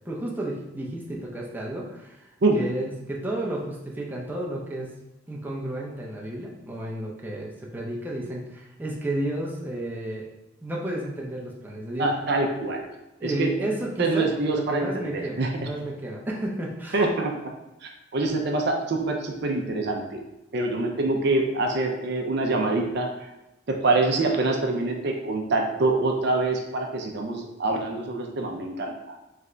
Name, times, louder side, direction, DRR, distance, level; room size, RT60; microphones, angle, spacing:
voice 1, 0.1-2.3 2.5-4.9 5.3-10.2 10.6-12.2 13.2-17.1, right 1 dB, 10° right, -3 dB, 0.6 m, -32 dB
voice 2, 12.0-12.9 13.2-13.5 14.0-15.7 16.9-17.3 17.8-20.2 20.5-23.3 23.7-29.2, right 2 dB, 60° right, 2 dB, 0.5 m, -25 dB
3.5 x 3.2 x 3.8 m, 0.94 s
head